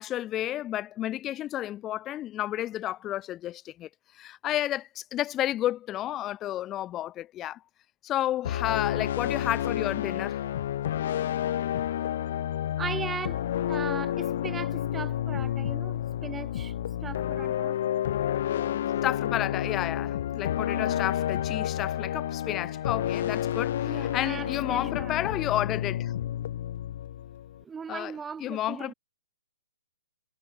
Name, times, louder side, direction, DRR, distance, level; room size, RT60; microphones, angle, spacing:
voice 1, 0.0-3.9 4.2-7.6 8.0-10.4 19.0-26.1 27.9-28.1 28.4-28.9, left 13 dB, 20° left, 1.8 m, -31 dB
sound 1, 8.4-27.6, left 11 dB, 50° left, 1.1 m, -30 dB
voice 2, 12.8-13.4 13.7-16.7 17.0-17.8 20.6-21.0 23.9-25.4 27.6-28.9, right 6 dB, 10° right, 2.6 m, -38 dB
figure-of-eight pair, 130°, 0 cm